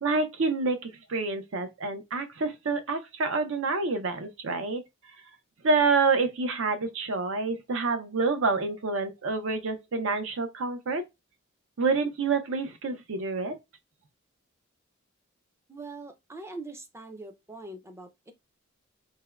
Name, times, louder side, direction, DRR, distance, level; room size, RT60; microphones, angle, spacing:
voice 1, 0.0-4.8 5.6-11.0 11.8-13.5, right 4 dB, 70° right, 0.6 m, -27 dB
voice 2, 15.7-18.3, right 2 dB, 15° right, 0.4 m, -42 dB
3.4 x 2.1 x 2.3 m
head